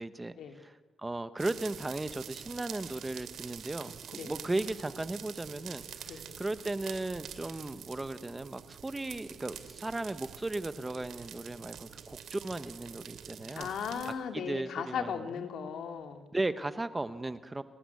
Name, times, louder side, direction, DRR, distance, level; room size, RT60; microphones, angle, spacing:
voice 1, 0.0-13.7 14.3-15.4 16.3-17.6, right 2 dB, 15° right, 12 dB, 0.9 m, -36 dB
sound 1, 1.4-14.1, right 8 dB, 90° right, 2.5 m, -46 dB
voice 2, 13.6-16.2, left 7 dB, 85° left, 6 dB, 2.7 m, -37 dB
30.0 x 20.0 x 9.6 m, 1.3 s
wide cardioid pair, 180°, 0 cm